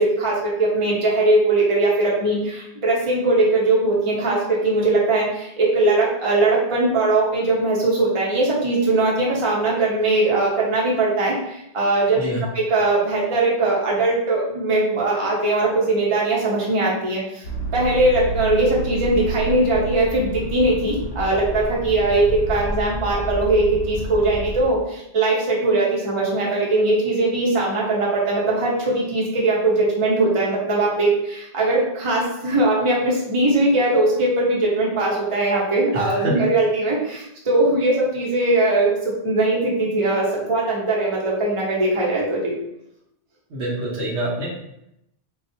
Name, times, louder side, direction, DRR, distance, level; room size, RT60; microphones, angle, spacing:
voice 1, 0.0-12.2 12.5-17.4 17.7-42.5, right 2 dB, 30° right, -4 dB, 0.8 m, -20 dB
sound 1, 17.4-24.6, right 1 dB, 65° left, 0.8 m, -30 dB
voice 2, 35.9-36.5 43.5-44.5, right 1 dB, 75° right, -4 dB, 1.2 m, -26 dB
4.1 x 2.4 x 2.7 m, 0.80 s
omnidirectional pair, 1.2 m